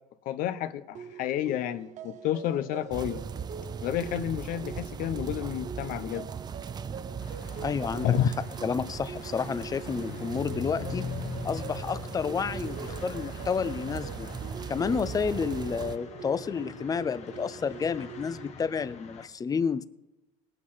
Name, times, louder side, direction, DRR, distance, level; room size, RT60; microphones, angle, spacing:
voice 1, 0.2-3.2 3.8-6.3 8.0-8.3, left 11 dB, 65° left, 11 dB, 0.9 m, -30 dB
sound 1, 0.9-18.5, right 7 dB, 50° right, 1.0 m, -44 dB
sound 2, 2.9-16.0, right 6 dB, 25° right, 0.5 m, -39 dB
sound 3, 7.2-19.3, left 7 dB, 45° left, 1.4 m, -43 dB
voice 2, 7.6-8.2 8.6-11.1 11.4-14.3 14.7-19.8, left 6 dB, 25° left, 15 dB, 0.6 m, -30 dB
19.0 x 9.3 x 5.7 m, 1.0 s
supercardioid pair, 105°, 15 cm